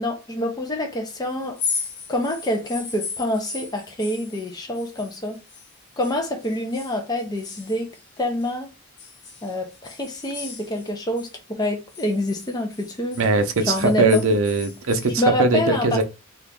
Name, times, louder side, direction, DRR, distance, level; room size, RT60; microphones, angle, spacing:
voice 1, 0.0-1.6 2.1-5.4 6.0-7.9 8.2-8.7 9.4-11.3 11.6-13.2 13.6-14.2 15.2-16.0, left 1 dB, 15° left, 0.5 m, -26 dB
sound 1, 1.4-5.7 6.0-8.5 9.0-11.3 11.6-15.1, left 5 dB, 50° left, 0.8 m, -36 dB
voice 2, 13.2-16.0, right 3 dB, 65° right, 0.6 m, -20 dB
2.9 x 2.4 x 3.5 m
head